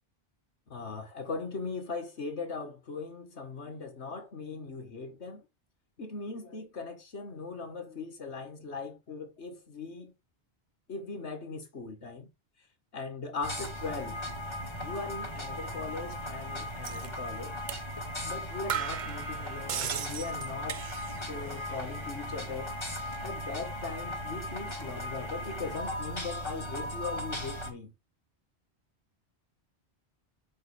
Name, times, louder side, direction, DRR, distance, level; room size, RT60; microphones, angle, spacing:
voice 1, 0.7-5.5 6.0-10.1 10.9-12.3 12.9-14.2 14.8-17.6 18.2-20.8 21.3-22.8 23.2-27.9, left 4 dB, 85° left, 2.0 m, -39 dB
sound 1, 13.4-27.7, left 1 dB, 25° left, 1.8 m, -37 dB
sound 2, 16.8-17.1 17.7-17.8 18.2-18.3 18.7-21.3 21.6-22.2, right 9 dB, 50° right, 0.7 m, -37 dB
7.8 x 6.8 x 3.5 m
omnidirectional pair, 1.1 m